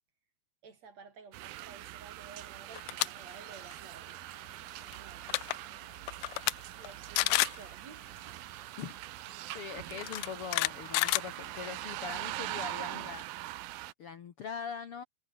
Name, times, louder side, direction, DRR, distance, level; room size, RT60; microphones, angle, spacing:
voice 1, 0.6-4.2 4.7-6.0 6.8-8.1, right 5 dB, 45° right, 4.4 m, -53 dB
sound 1, 1.3-13.9, right 17 dB, 80° right, 2.5 m, -43 dB
sound 2, 2.7-3.1 3.5-3.7 4.9-5.0 5.2-5.6 6.1-6.5 6.8-6.9 7.2-7.6 8.8-8.9 10.0-11.8, left 21 dB, 80° left, 2.4 m, -29 dB
voice 2, 9.3-13.3 14.0-15.0, left 6 dB, 55° left, 1.6 m, -42 dB
omnidirectional pair, 4.4 m